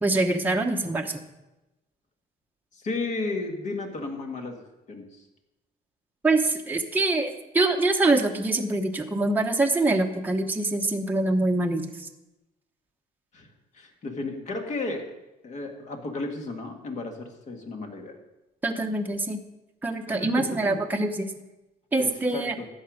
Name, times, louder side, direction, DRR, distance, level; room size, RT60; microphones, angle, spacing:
voice 1, 0.0-1.2 6.2-11.9 18.6-19.4 19.8-21.3 21.9-22.5, right 2 dB, 10° right, 2 dB, 1.0 m, -24 dB
voice 2, 2.7-5.2 13.3-13.5 13.7-15.1 15.4-18.1 20.1-20.8 22.0-22.7, left 3 dB, 45° left, 3 dB, 2.1 m, -34 dB
13.0 x 8.8 x 5.1 m, 0.99 s
cardioid pair, 110°, 17 cm